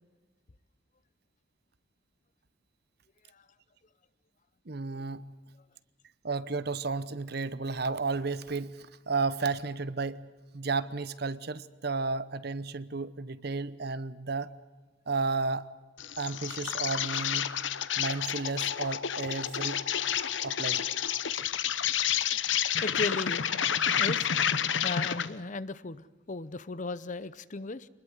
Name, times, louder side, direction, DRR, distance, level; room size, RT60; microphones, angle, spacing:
voice 1, 4.7-5.3 6.2-10.2 10.5-14.5 15.1-15.7 16.2-17.5 18.0-19.8 20.4-20.9, right 4 dB, 55° right, 0.9 m, -33 dB
Insect, 16.0-25.4, left 9 dB, 75° left, 0.9 m, -30 dB
voice 2, 22.8-23.5 24.0-24.3 24.8-27.9, left 3 dB, 40° left, 0.7 m, -36 dB
25.0 x 20.5 x 8.2 m
head